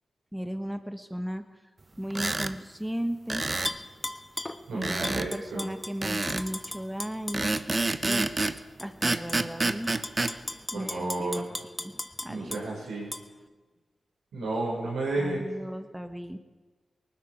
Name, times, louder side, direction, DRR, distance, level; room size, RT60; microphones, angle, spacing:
voice 1, 0.3-1.4 2.0-3.8 4.7-8.3 8.8-10.1 10.7-12.7 15.1-16.4, equal, 5° right, 8 dB, 1.2 m, -36 dB
sound 1, 2.1-2.5 3.3-3.8 4.8-5.3 6.0-6.5 7.3-8.6 9.0-10.3, right 2 dB, 40° right, 0.8 m, -28 dB
Tap / Glass, 3.7-4.6 5.0-7.6 8.1-8.2 8.8-9.4 9.8-12.6 13.1-13.2, left 1 dB, 25° left, 1.1 m, -36 dB
voice 2, 4.7-5.7 10.7-11.5 12.3-13.1 14.3-15.4, right 2 dB, 90° right, -4 dB, 5.5 m, -32 dB
19.0 x 13.0 x 4.9 m, 1.3 s
supercardioid pair, 40°, 0 cm